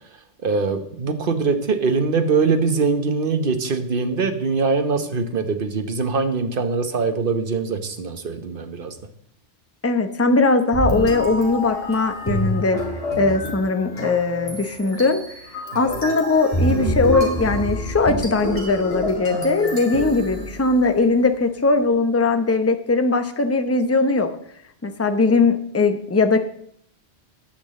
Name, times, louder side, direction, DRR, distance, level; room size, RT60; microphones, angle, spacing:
voice 1, 0.4-8.9, right 4 dB, 55° right, 8 dB, 1.3 m, -22 dB
voice 2, 9.8-12.8 13.2-15.2 15.7-24.3 24.8-26.4, left 3 dB, 15° left, 8 dB, 0.7 m, -20 dB
sound 1, 10.7-21.0, equal, 35° left, 2.8 m, -27 dB
10.0 x 6.1 x 7.5 m, 0.65 s
omnidirectional pair, 1.1 m